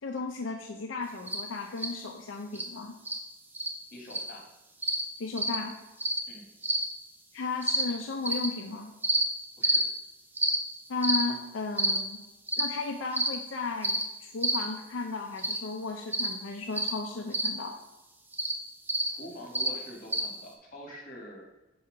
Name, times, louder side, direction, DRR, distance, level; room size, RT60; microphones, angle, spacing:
voice 1, 0.0-3.0 5.2-5.8 7.3-8.9 10.9-12.2 12.6-17.7, left 3 dB, 80° left, 2 dB, 0.5 m, -35 dB
sound 1, 1.3-1.4 1.8-1.9 2.5-2.7 3.1-3.2 3.5-3.7 4.1-4.3 4.8-5.0 5.4-5.6 6.0-6.2 6.6-6.8 7.6-7.8 8.2-8.5 9.0-9.2 9.6-9.8 10.4-10.6 11.0-11.2 11.8-12.0 12.5-12.7 13.1-13.4 13.8-14.0 14.4-14.6 15.4-15.6 16.1-16.3 16.7-16.9 17.3-17.5 18.3-18.5 18.9-19.1 19.5-19.7 20.1-20.2, right 1 dB, 10° right, 0.6 m, -27 dB
voice 2, 3.9-4.4 6.3-6.5 9.6-9.8 19.1-21.4, equal, 45° left, 0 dB, 1.8 m, -45 dB
4.7 x 4.3 x 4.9 m, 1.0 s
head